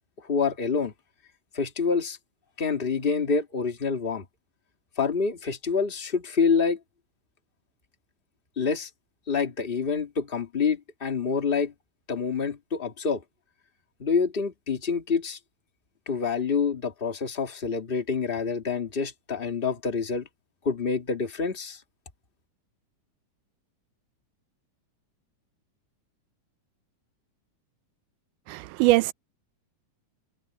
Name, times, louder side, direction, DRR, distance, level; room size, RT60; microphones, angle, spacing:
voice 1, 0.2-0.9 1.5-2.2 2.6-4.2 5.0-6.8 8.6-8.9 9.3-11.7 12.1-13.2 14.0-15.4 16.0-20.3 20.6-21.8, left 5 dB, 20° left, 1.5 m, -27 dB
voice 2, 28.5-29.1, right 18 dB, 90° right, 2.1 m, -22 dB
omnidirectional pair, 3.6 m